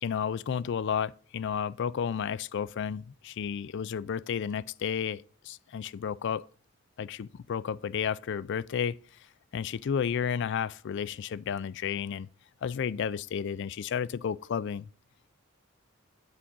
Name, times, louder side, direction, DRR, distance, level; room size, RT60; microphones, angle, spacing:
voice 1, 0.0-6.5 7.0-9.0 9.5-12.3 12.6-14.9, left 7 dB, 60° left, 0.4 m, -32 dB
8.7 x 8.4 x 3.8 m
head